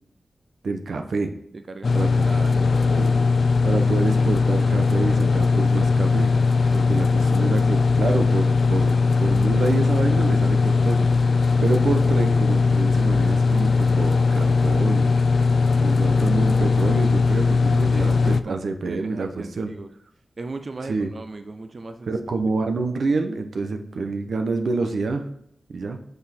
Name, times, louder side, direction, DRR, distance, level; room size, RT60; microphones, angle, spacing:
voice 1, 0.6-1.3 1.9-2.3 2.9-3.2 3.6-6.3 6.7-11.1 11.6-15.2 15.8-19.7 20.9-21.1 22.1-25.3 25.7-26.0, right 3 dB, 90° right, 6 dB, 0.8 m, -27 dB
voice 2, 1.5-3.4 17.9-19.9 20.4-22.4, right 3 dB, 45° right, 7 dB, 0.5 m, -37 dB
sound 1, 1.8-18.4, left 4 dB, 60° left, 0.3 m, -19 dB
6.1 x 5.5 x 4.4 m, 0.71 s
wide cardioid pair, 130°, 0 cm